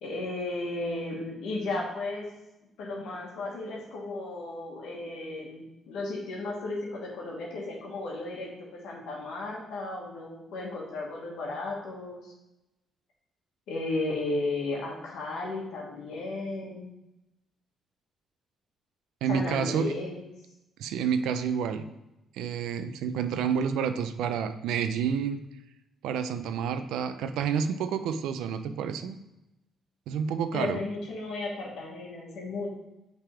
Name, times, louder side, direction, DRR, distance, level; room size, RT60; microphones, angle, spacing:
voice 1, 0.0-2.2 2.8-12.3 13.7-16.9 19.3-20.2 30.5-32.7, left 2 dB, 80° left, -2 dB, 1.2 m, -34 dB
voice 2, 19.2-19.9 20.8-21.8 22.3-25.4 26.0-29.2 30.1-30.8, right 7 dB, 90° right, 10 dB, 0.4 m, -29 dB
5.6 x 3.5 x 4.8 m, 0.92 s
cardioid pair, 90°, 0 cm